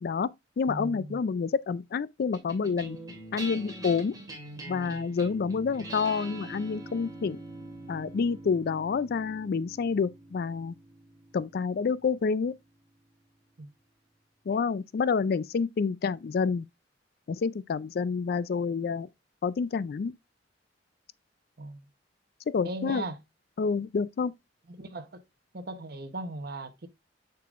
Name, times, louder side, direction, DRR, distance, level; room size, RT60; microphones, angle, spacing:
voice 1, 0.0-3.0 3.3-4.1 4.7-7.4 7.9-10.7 11.3-12.5 14.5-16.6 17.4-19.1 19.4-20.1 22.5-23.0 23.6-24.3, left 5 dB, 55° left, 0.4 m, -28 dB
voice 2, 0.7-1.2 13.6-13.7 21.6-21.8 22.6-23.2 24.7-25.2 25.5-26.9, right 2 dB, 55° right, 0.9 m, -38 dB
sound 1, 2.3-12.9, right 2 dB, 20° right, 2.7 m, -44 dB
6.8 x 6.6 x 2.4 m
head